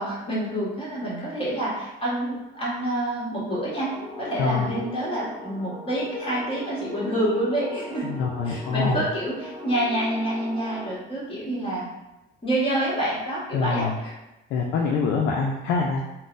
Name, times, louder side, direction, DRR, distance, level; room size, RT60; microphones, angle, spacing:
voice 1, 0.0-3.9 4.2-8.1 8.4-11.8 12.4-14.1, right 1 dB, 25° left, -7 dB, 1.3 m, -27 dB
sound 1, 3.8-11.0, equal, 10° right, 0.5 m, -39 dB
voice 2, 8.0-9.0 13.5-14.0 14.5-16.0, left 4 dB, 75° left, -1 dB, 0.4 m, -25 dB
3.8 x 2.0 x 2.5 m, 0.97 s
cardioid pair, 105°, 20 cm